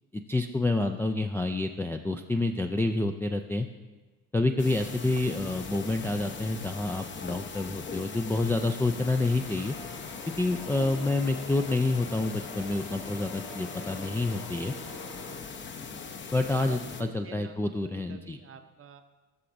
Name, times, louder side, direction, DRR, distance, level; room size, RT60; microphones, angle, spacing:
voice 1, 0.1-3.7 4.3-9.8 10.4-14.7 16.3-18.4, left 2 dB, 5° left, 3 dB, 0.3 m, -28 dB
sound 1, 4.6-17.0, left 5 dB, 30° left, 0.8 m, -41 dB
Church bell, 8.0-15.4, left 3 dB, 45° left, 1.8 m, -45 dB
voice 2, 16.7-17.6 18.1-19.1, right 7 dB, 35° right, 9 dB, 0.7 m, -47 dB
13.0 x 6.7 x 2.6 m, 1.2 s
hypercardioid pair, 55°, 38 cm